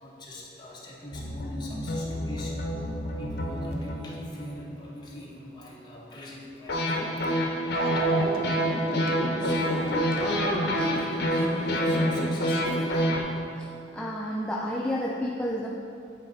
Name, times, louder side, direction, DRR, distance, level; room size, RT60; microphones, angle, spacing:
voice 1, 0.0-2.9 3.2-7.1 9.4-13.2, left 1 dB, 25° left, -5 dB, 1.1 m, -39 dB
sound 1, 1.1-5.0 6.7-13.2, equal, 60° left, 0.8 m, -27 dB
Dog, 6.7-6.8 7.7-11.1, right 3 dB, 50° right, 0.6 m, -35 dB
voice 2, 13.9-15.7, equal, 5° left, -3 dB, 0.3 m, -30 dB
9.1 x 4.0 x 3.9 m, 2.6 s
head